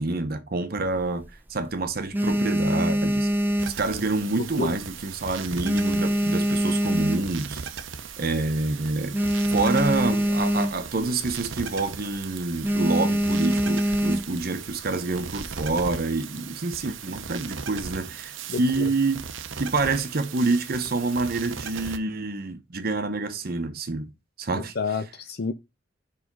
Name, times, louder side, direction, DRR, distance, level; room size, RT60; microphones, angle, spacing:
voice 1, 0.0-3.3 3.8-7.6 8.2-9.2 9.5-19.2 19.6-24.1 24.4-24.7, right 3 dB, 50° right, 0.8 m, -27 dB
sound 1, 0.8-1.6 2.0-4.4 4.7-5.1 5.4-7.6 8.1-8.2 8.4-8.5 8.8-11.0 11.3-11.6 11.9-12.2 12.6-14.5 15.2-15.8, equal, 10° right, 0.5 m, -24 dB
sound 2, 3.6-22.0, right 6 dB, 90° right, 0.8 m, -38 dB
voice 2, 18.5-18.9 24.6-25.5, left 4 dB, 55° left, 0.6 m, -29 dB
5.0 x 4.9 x 5.3 m
head